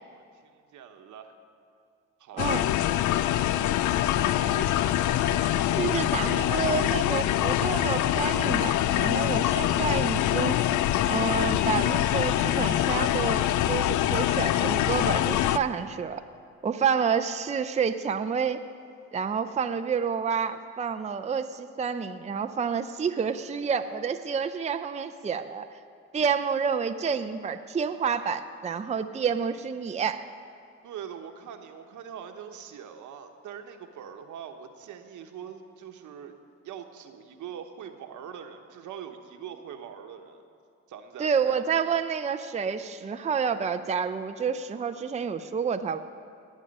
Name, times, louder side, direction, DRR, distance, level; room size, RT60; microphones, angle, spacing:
voice 1, 0.1-1.4 2.2-2.8 3.1-5.1 30.8-36.4 36.6-40.4 40.9-41.6, right 8 dB, 75° right, 5 dB, 1.2 m, -43 dB
sound 1, 2.4-15.6, left 12 dB, 75° left, 0.5 m, -24 dB
voice 2, 5.7-10.6 11.1-16.2 16.6-18.6 19.1-25.7 26.1-30.2 41.2-46.0, right 6 dB, 25° right, 8 dB, 0.5 m, -29 dB
18.5 x 9.2 x 5.4 m, 2.3 s
cardioid pair, 90°, 30 cm